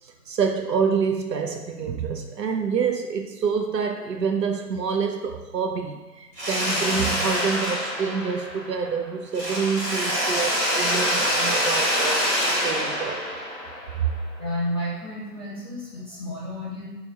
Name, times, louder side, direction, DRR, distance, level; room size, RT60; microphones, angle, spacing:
voice 1, 0.0-13.3 14.0-14.1, right 6 dB, 80° right, 4 dB, 0.6 m, -27 dB
Mechanisms, 6.4-9.0 9.3-14.2, equal, 35° right, 1.4 m, -25 dB
voice 2, 14.4-16.9, left 1 dB, 15° right, -17 dB, 1.3 m, -31 dB
3.3 x 2.4 x 4.1 m, 1.2 s
figure-of-eight pair, 175°, 49 cm